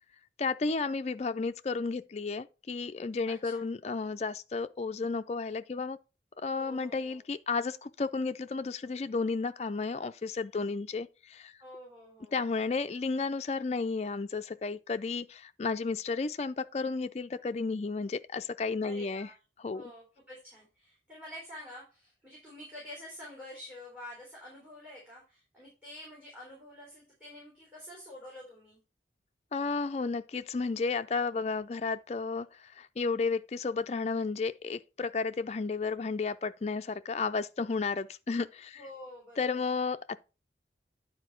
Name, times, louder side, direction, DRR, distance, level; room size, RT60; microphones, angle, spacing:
voice 1, 0.4-6.0 6.4-11.5 12.3-19.3 19.6-19.8 29.5-38.8 39.4-40.2, left 4 dB, 35° left, 0.4 m, -33 dB
voice 2, 3.3-3.7 6.5-7.2 11.6-12.4 18.8-19.4 19.7-28.8 38.8-39.6, left 1 dB, 10° right, 3.5 m, -48 dB
9.6 x 4.3 x 4.5 m
head